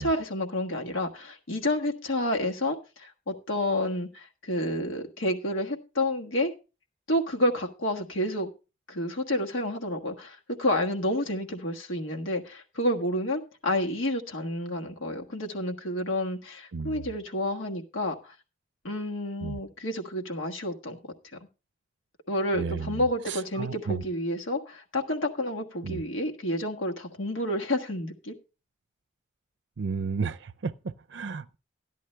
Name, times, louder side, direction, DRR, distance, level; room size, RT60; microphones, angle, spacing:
voice 1, 0.0-6.5 7.1-8.5 8.9-18.3 18.8-21.1 22.3-28.3, left 1 dB, 90° left, 1.4 m, -29 dB
voice 2, 22.5-23.0 23.3-24.0 25.8-26.0 29.8-31.6, right 5 dB, 65° right, 0.5 m, -33 dB
13.0 x 10.5 x 3.3 m
head